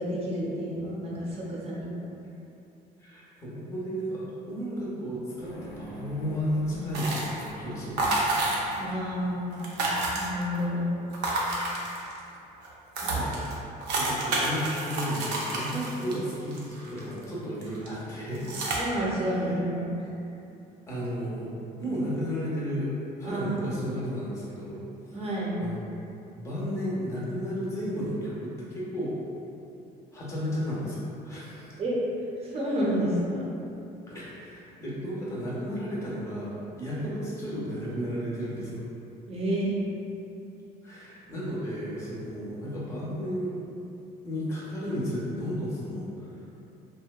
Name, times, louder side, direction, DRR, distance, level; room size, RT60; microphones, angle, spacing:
voice 1, 0.0-2.0 8.7-9.5 10.2-10.9 18.8-20.1 23.2-23.6 25.1-25.6 31.8-32.0 32.4-33.4 39.3-39.8, equal, 35° right, -5 dB, 0.6 m, -29 dB
voice 2, 3.0-8.4 13.0-13.5 13.9-18.5 19.3-19.5 20.9-21.5 21.8-22.9 23.2-25.2 25.6-25.8 26.4-29.2 30.1-31.8 34.1-38.8 40.8-43.6 44.2-46.3, equal, 15° left, -7 dB, 0.6 m, -33 dB
sound 1, 5.4-10.5, left 2 dB, 85° left, 0.7 m, -43 dB
sound 2, 6.9-7.5 8.0-8.9 9.2-9.3 9.5-10.6 11.1-12.2 12.6-12.7 13.0-17.2 17.6-17.9 18.3-18.8, right 2 dB, 80° right, 0.5 m, -29 dB
2.8 x 2.1 x 2.2 m, 2.8 s
cardioid pair, 110°, 17 cm